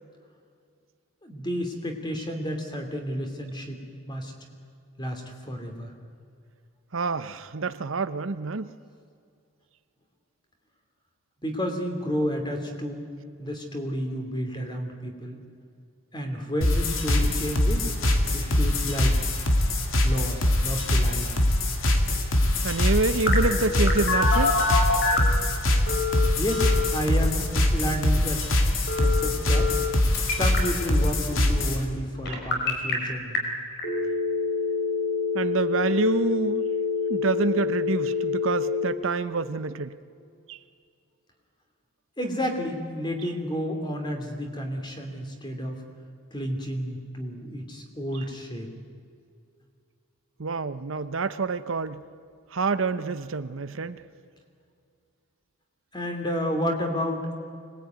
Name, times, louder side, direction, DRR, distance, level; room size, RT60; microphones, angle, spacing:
voice 1, 1.2-3.8 4.1-4.3 5.0-5.9 11.4-13.0 13.4-15.4 16.1-17.9 18.3-19.2 20.0-21.3 26.4-28.5 29.0-29.7 30.3-33.4 42.2-45.8 46.3-48.7 55.9-57.3, equal, 20° left, 4 dB, 3.0 m, -31 dB
voice 2, 6.9-8.7 22.6-24.6 32.3-32.4 32.6-32.8 35.3-36.6 37.1-40.0 40.5-40.6 48.1-48.2 50.4-52.0 52.5-54.0, right 3 dB, 65° right, 12 dB, 0.8 m, -27 dB
sound 1, 16.6-31.8, left 1 dB, 70° left, 2.5 m, -23 dB
Telephone, 23.3-25.4 25.9-26.9 28.9-29.9 30.1-30.6 32.3-32.9 33.4-33.5 33.8-38.8, left 4 dB, 50° left, 4.7 m, -26 dB
25.0 x 20.0 x 9.4 m, 2.3 s
head